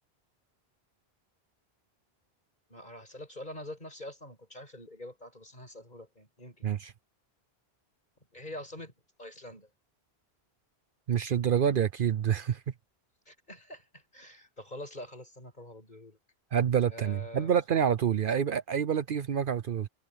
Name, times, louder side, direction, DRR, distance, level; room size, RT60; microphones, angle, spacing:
voice 1, 2.7-6.7 8.3-8.9 9.2-9.7 13.3-16.2 16.9-17.5, left 1 dB, 45° left, 7.2 m, -45 dB
voice 2, 11.1-12.6 16.5-19.9, right 8 dB, 60° right, 0.8 m, -27 dB
omnidirectional pair, 1.1 m